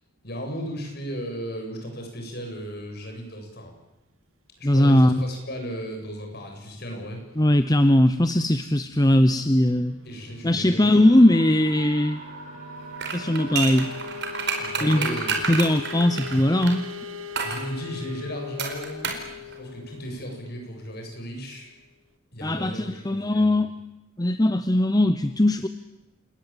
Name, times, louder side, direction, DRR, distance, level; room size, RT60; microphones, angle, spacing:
voice 1, 0.2-3.7 4.6-7.2 10.0-11.2 14.6-15.5 17.4-19.1 19.3-21.7 22.3-23.6, equal, 50° left, 2 dB, 7.6 m, -35 dB
voice 2, 4.6-5.2 7.4-10.0 10.4-12.2 13.1-13.9 14.8-15.2 15.5-16.9 22.4-23.7 24.2-25.7, left 1 dB, 20° left, 10 dB, 0.8 m, -20 dB
sound 1, 9.2-21.7, left 4 dB, 80° right, 1.7 m, -40 dB
Screaming, 10.8-14.5, right 2 dB, 40° right, 7.6 m, -43 dB
sound 2, 13.0-16.8 17.4-17.7 18.6-19.3 19.5-19.6, right 5 dB, 55° right, 4.8 m, -29 dB
29.0 x 20.0 x 9.0 m, 0.94 s
head